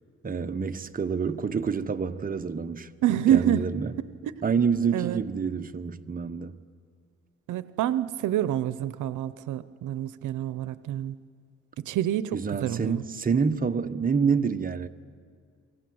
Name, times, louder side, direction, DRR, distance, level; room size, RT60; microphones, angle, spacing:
voice 1, 0.2-2.9 3.3-3.9 4.4-6.6 12.3-14.9, right 6 dB, 30° right, 1.1 m, -27 dB
voice 2, 3.0-3.6 4.2-4.3 4.9-5.2 7.5-11.2 11.8-13.0, right 11 dB, 80° right, 0.8 m, -27 dB
28.5 x 24.0 x 7.8 m
cardioid pair, 90°, 30 cm